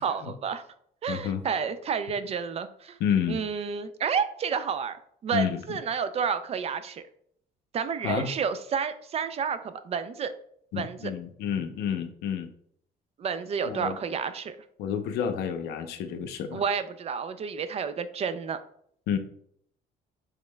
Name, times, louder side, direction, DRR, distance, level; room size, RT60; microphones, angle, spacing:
voice 1, 0.0-0.6 1.0-3.0 3.3-7.0 7.7-10.3 10.8-11.1 13.2-14.6 16.5-18.6, right 6 dB, 35° right, 12 dB, 0.4 m, -30 dB
voice 2, 1.1-1.4 3.0-3.4 5.3-5.8 8.0-8.3 10.7-12.5 13.6-14.0 14.8-16.6 19.1-19.2, left 8 dB, 80° left, 7 dB, 0.6 m, -29 dB
5.1 x 3.6 x 2.2 m, 0.66 s
cardioid pair, 110°, 17 cm